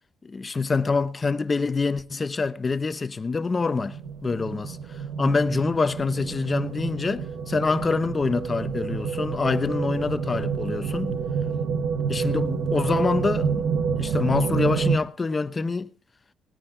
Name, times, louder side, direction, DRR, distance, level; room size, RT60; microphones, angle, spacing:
voice 1, 0.2-4.8 5.2-11.1 12.1-13.7 14.0-15.9, left 4 dB, 30° left, 0.9 m, -26 dB
sound 1, 3.6-15.0, right 6 dB, 85° right, 1.4 m, -28 dB
19.5 x 9.8 x 3.8 m
cardioid pair, 90°, 0 cm